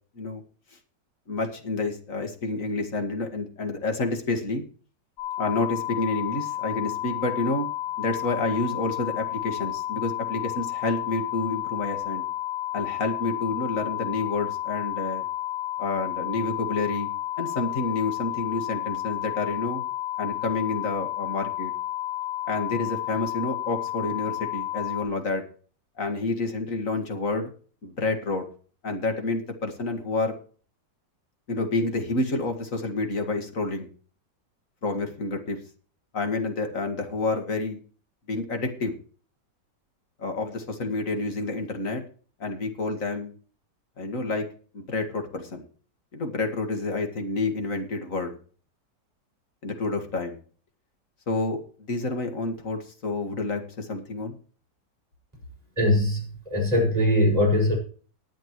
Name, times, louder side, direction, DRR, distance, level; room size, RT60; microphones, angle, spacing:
voice 1, 1.3-4.6 5.4-7.7 8.0-12.2 12.7-15.2 15.8-17.1 17.4-19.8 20.2-21.7 22.5-25.4 26.0-27.5 27.8-28.5 28.8-30.3 31.5-33.9 34.8-35.6 36.1-37.8 38.3-39.0 40.2-42.0 42.4-43.3 44.0-44.4 44.7-45.6 46.1-48.3 49.6-50.4 51.3-51.6 51.9-54.3, left 3 dB, 50° left, 2.3 m, -29 dB
sound 1, 5.2-25.0, left 14 dB, 70° left, 3.2 m, -31 dB
voice 2, 55.8-57.7, left 1 dB, 20° right, 6.2 m, -21 dB
19.5 x 9.0 x 3.1 m
omnidirectional pair, 1.9 m